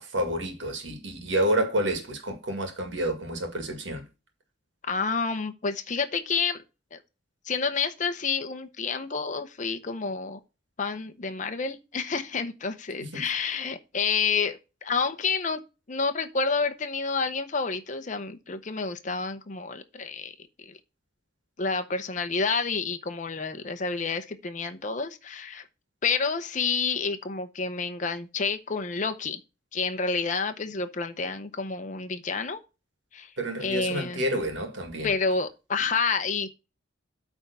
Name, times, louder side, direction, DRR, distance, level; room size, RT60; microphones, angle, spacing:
voice 1, 0.0-4.0 13.0-13.3 33.4-35.1, right 1 dB, 70° right, 2.0 m, -29 dB
voice 2, 4.8-6.6 6.9-7.0 7.4-10.4 10.8-15.6 15.9-20.8 21.6-25.6 26.0-29.4 29.7-32.6 33.1-33.3 33.6-34.2 35.0-36.5, left 5 dB, 40° left, 0.7 m, -29 dB
8.8 x 3.5 x 6.7 m
head